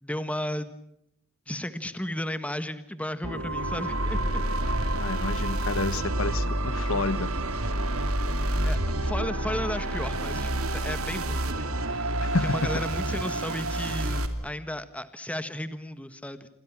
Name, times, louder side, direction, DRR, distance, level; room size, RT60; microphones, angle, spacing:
voice 1, 0.0-0.7 1.5-4.4 8.6-12.1 12.4-16.5, left 1 dB, 5° left, 11 dB, 1.5 m, -34 dB
sound 1, 3.2-14.3, right 1 dB, 90° right, 3.1 m, -29 dB
sound 2, 4.1-11.6, equal, 55° left, 5.7 m, -35 dB
voice 2, 4.9-7.3 12.2-12.5, left 3 dB, 70° left, 14 dB, 1.3 m, -29 dB
28.5 x 26.0 x 6.1 m, 0.76 s
head